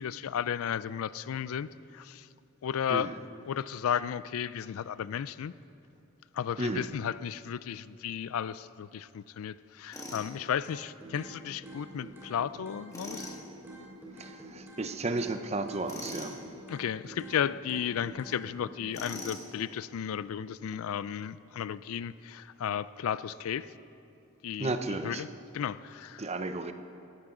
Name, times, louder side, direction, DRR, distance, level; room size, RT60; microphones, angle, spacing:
voice 1, 0.0-2.3 2.6-3.1 3.5-5.5 6.3-13.4 16.7-23.7 24.4-25.3 25.5-26.2, left 8 dB, 75° left, 17 dB, 0.3 m, -34 dB
Tools, 9.9-10.3 12.9-13.4 15.9-16.4 18.9-19.5, left 1 dB, 15° left, 1.5 m, -41 dB
sound 1, 10.6-11.3 11.6-13.3 13.6-15.4 15.7-17.4 17.7-18.6, right 2 dB, 10° right, 3.2 m, -47 dB
voice 2, 14.2-16.3 24.6-25.2 26.2-26.7, right 2 dB, 30° right, 9 dB, 0.6 m, -33 dB
18.5 x 14.0 x 3.8 m, 2.7 s
head